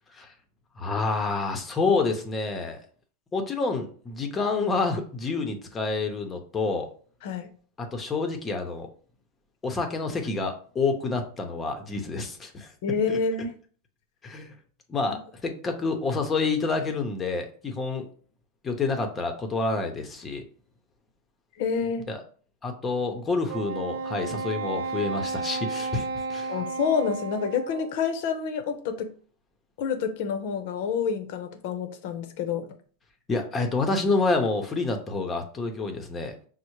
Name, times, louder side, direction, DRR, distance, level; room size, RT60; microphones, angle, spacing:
voice 1, 0.8-2.8 3.3-6.9 7.8-8.9 9.6-12.7 13.1-13.2 14.2-14.5 14.9-18.1 18.6-20.4 22.1-22.2 22.6-26.6 33.3-36.4, left 3 dB, 20° left, 4 dB, 0.7 m, -28 dB
voice 2, 12.8-13.5 21.6-22.1 26.5-29.1 29.8-32.7, left 6 dB, 65° left, 8 dB, 0.7 m, -28 dB
Wind instrument woodwind instrument, 23.5-28.1, right 4 dB, 80° right, 0.5 m, -33 dB
5.3 x 2.1 x 3.0 m, 0.44 s
hypercardioid pair, 120°, 0 cm